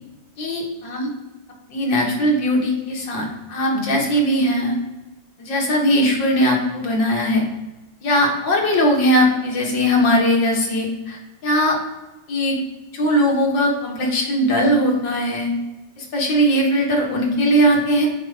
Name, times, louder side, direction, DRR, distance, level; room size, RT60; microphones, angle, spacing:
voice 1, 0.4-1.1 1.7-4.7 5.4-7.5 8.0-11.8 12.3-12.6 12.9-15.5 16.0-18.1, equal, 85° left, -1 dB, 2.2 m, -19 dB
8.7 x 4.6 x 3.4 m, 1.1 s
omnidirectional pair, 1.9 m